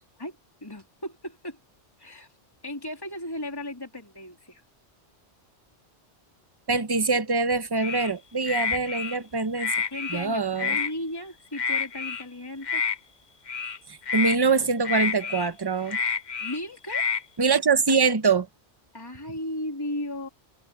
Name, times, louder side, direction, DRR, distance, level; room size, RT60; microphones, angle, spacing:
voice 1, 0.6-1.6 2.0-2.3 2.6-4.6 9.9-12.8 16.4-17.1 18.9-20.3, left 1 dB, 20° left, 3.1 m, -35 dB
voice 2, 6.7-9.7 10.1-10.8 13.9-16.0 17.4-18.5, right 4 dB, 25° right, 0.8 m, -24 dB
sound 1, 7.8-8.1 8.5-9.2 9.6-10.2 10.6-10.9 11.5-12.2 12.6-13.0 13.5-13.8 14.0-14.4 14.8-15.5 15.9-16.6 16.9-17.2, left 6 dB, 45° left, 0.9 m, -28 dB
omnidirectional pair, 1.2 m